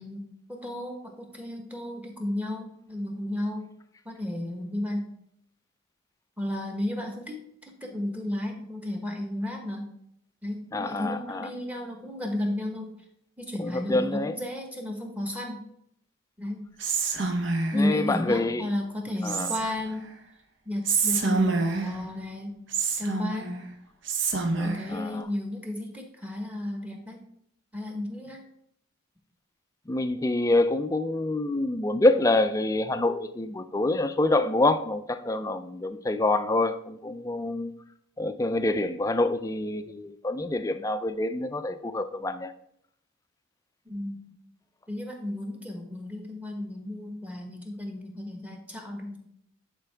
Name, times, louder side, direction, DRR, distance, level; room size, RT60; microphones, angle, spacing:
voice 1, 0.0-3.6 4.0-5.1 6.4-7.4 7.8-9.9 10.4-12.9 13.4-15.6 16.4-16.7 17.7-20.1 20.6-22.6 23.0-23.6 24.6-27.2 27.7-28.4 43.8-44.2 44.9-49.2, left 1 dB, 5° right, 2 dB, 1.1 m, -33 dB
voice 2, 10.7-11.5 13.6-14.4 17.7-18.7 19.2-19.5 24.5-25.3 29.9-37.7 38.2-42.5, left 2 dB, 15° left, 10 dB, 0.3 m, -26 dB
Whispering, 16.8-17.9 19.2-19.9 20.8-22.0 22.7-23.6 24.1-24.9, right 4 dB, 65° right, 0.8 m, -27 dB
10.0 x 4.6 x 3.4 m, 0.73 s
head